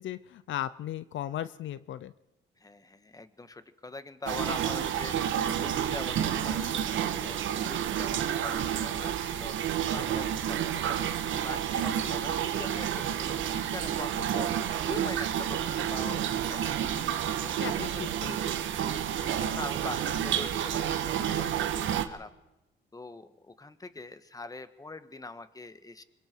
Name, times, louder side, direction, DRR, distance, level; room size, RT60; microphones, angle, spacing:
voice 1, 0.0-2.1 17.6-18.6, left 12 dB, 70° left, 15 dB, 0.7 m, -37 dB
voice 2, 2.6-5.2 5.4-9.5 9.9-16.2 16.5-16.8 17.4-18.1 18.5-18.6 18.9-22.3 22.9-26.0, left 3 dB, 20° left, 11 dB, 1.7 m, -43 dB
sound 1, 4.3-22.1, right 9 dB, 75° right, 1.6 m, -30 dB
25.5 x 22.5 x 4.7 m, 0.94 s
cardioid pair, 90°, 20 cm